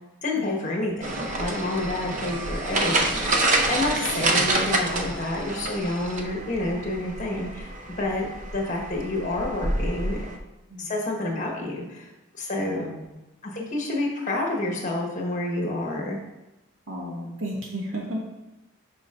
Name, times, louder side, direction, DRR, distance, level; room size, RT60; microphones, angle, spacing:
voice 1, 0.2-3.3 3.7-10.2 10.8-12.1 12.3-12.9 13.4-16.2, left 2 dB, 35° left, -1 dB, 1.2 m, -29 dB
sound 1, 1.0-10.4, right 2 dB, 35° right, 0.6 m, -27 dB
voice 2, 1.8-2.1 4.0-4.3 10.7-10.9 12.6-13.0 16.9-18.2, equal, 70° right, -3 dB, 1.9 m, -34 dB
10.0 x 5.1 x 2.5 m, 0.99 s
head